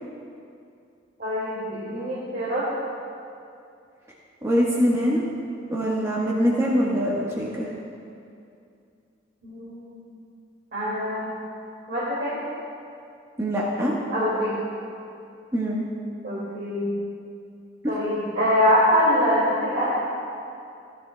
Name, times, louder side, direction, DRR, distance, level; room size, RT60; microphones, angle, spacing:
voice 1, 1.2-2.7 9.4-10.1 10.7-11.4 11.9-12.4 14.1-14.6 16.2-16.9 17.9-19.9, equal, 60° right, -9 dB, 2.3 m, -24 dB
voice 2, 4.4-5.2 5.7-7.7 13.4-13.9 15.5-15.8, equal, 15° right, -6 dB, 1.3 m, -23 dB
16.5 x 11.0 x 2.3 m, 2.5 s
head